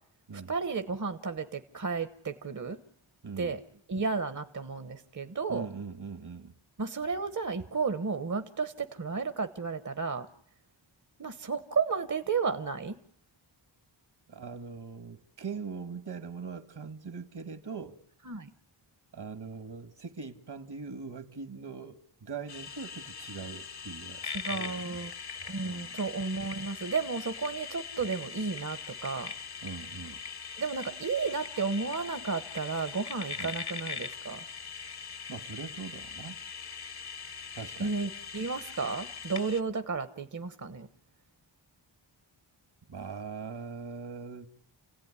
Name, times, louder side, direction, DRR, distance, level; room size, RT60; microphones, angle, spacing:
voice 1, 0.3-2.8 3.4-3.6 3.9-5.7 6.8-10.3 11.2-13.0 18.3-18.5 24.3-25.1 25.5-29.3 30.6-34.4 37.8-40.9, right 4 dB, 40° right, 1.2 m, -33 dB
voice 2, 3.2-3.6 5.5-6.5 14.3-18.0 19.1-25.0 25.6-26.0 29.6-30.2 33.4-33.6 35.3-36.4 37.5-38.0 42.9-44.5, right 5 dB, 60° right, 1.8 m, -41 dB
sound 1, 22.5-39.6, left 6 dB, 55° left, 1.2 m, -41 dB
30.0 x 17.0 x 9.8 m
wide cardioid pair, 100°, 45 cm